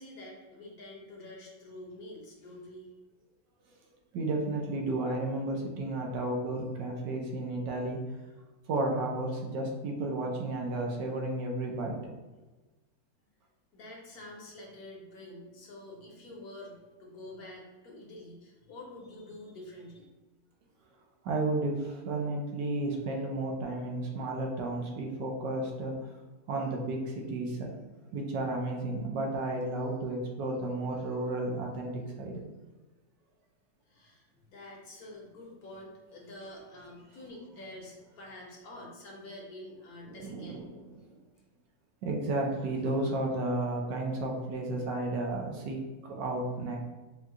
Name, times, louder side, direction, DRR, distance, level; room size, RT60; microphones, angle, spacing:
voice 1, 0.0-2.9 13.7-20.1 33.9-40.7, left 1 dB, 60° left, -2 dB, 1.3 m, -47 dB
voice 2, 4.1-8.0 8.7-12.0 21.2-26.0 26.5-27.7 28.1-32.4 40.1-40.7 41.1-41.2 42.0-46.8, right 2 dB, 75° right, 0 dB, 1.3 m, -32 dB
4.5 x 2.3 x 3.7 m, 1.2 s
omnidirectional pair, 1.9 m